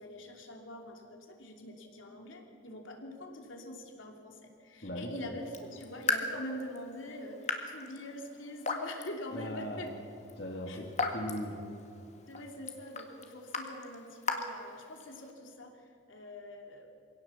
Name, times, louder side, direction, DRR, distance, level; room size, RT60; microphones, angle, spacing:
voice 1, 0.0-9.9 10.7-10.8 12.3-16.9, left 1 dB, 85° left, 2 dB, 2.9 m, -44 dB
voice 2, 4.8-5.2 9.3-9.9 10.4-11.7, equal, 55° left, 1 dB, 2.1 m, -39 dB
Raindrop / Drip, 5.4-15.3, left 4 dB, 35° left, 1.8 m, -39 dB
24.0 x 17.5 x 7.2 m, 2.6 s
head